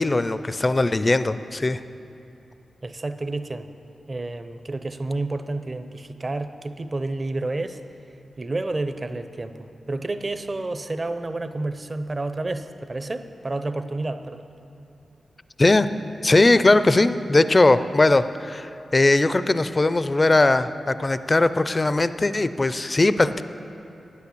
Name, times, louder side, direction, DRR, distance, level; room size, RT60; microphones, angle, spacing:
voice 1, 0.0-1.8 15.6-15.9 16.2-23.4, left 2 dB, 30° left, 13 dB, 0.4 m, -19 dB
voice 2, 2.8-3.7 4.1-7.8 8.4-14.5, right 2 dB, 35° right, 10 dB, 0.6 m, -30 dB
10.0 x 8.4 x 8.3 m, 2.7 s
wide cardioid pair, 85°, 0 cm